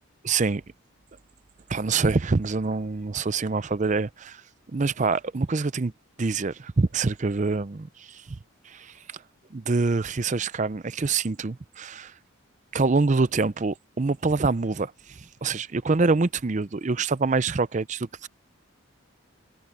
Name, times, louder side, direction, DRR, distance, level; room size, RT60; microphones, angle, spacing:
voice 1, 0.2-0.6 1.7-4.4 4.7-5.9 6.2-8.4 8.7-8.9 9.5-12.1 12.7-18.3, right 3 dB, 35° right, 0.5 m, -25 dB
head